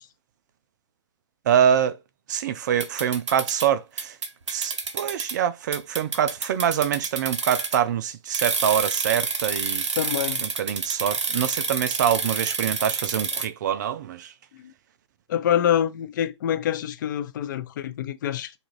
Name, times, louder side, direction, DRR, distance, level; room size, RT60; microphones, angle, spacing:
voice 1, 1.5-2.0 2.3-4.2 4.5-9.9 10.4-14.3, right 9 dB, 40° right, 0.4 m, -25 dB
sound 1, 2.8-3.7 4.0-5.4 5.7-7.9 8.3-13.5, right 4 dB, 70° right, 0.7 m, -28 dB
voice 2, 10.0-10.4 14.6-14.7 15.3-18.6, left 10 dB, 40° left, 0.4 m, -26 dB
2.7 x 2.4 x 3.0 m
figure-of-eight pair, 125°, 15 cm